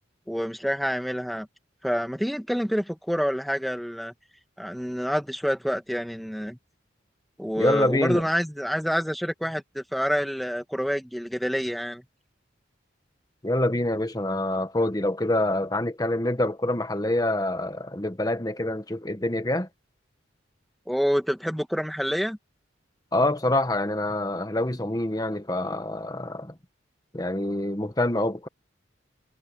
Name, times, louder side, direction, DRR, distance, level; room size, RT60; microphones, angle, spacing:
voice 1, 0.3-1.5 1.8-4.1 4.6-6.6 7.4-12.0 20.9-22.4, equal, ahead, 1.5 m, -27 dB
voice 2, 7.6-8.3 13.4-19.7 23.1-26.6 27.1-28.5, left 1 dB, 20° left, 1.2 m, -26 dB
head